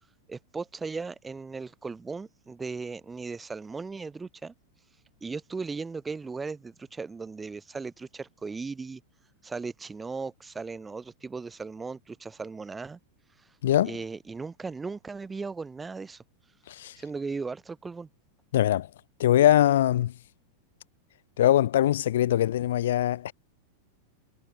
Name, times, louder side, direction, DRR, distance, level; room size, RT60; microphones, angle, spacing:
voice 1, 0.3-4.5 5.2-9.0 9.4-13.0 13.8-16.2 17.0-18.1, right 4 dB, 15° right, 1.2 m, -37 dB
voice 2, 13.6-14.0 16.7-16.9 18.5-18.9 19.2-20.1 21.4-23.3, left 12 dB, 60° left, 0.5 m, -22 dB
figure-of-eight pair, 90°, 0 cm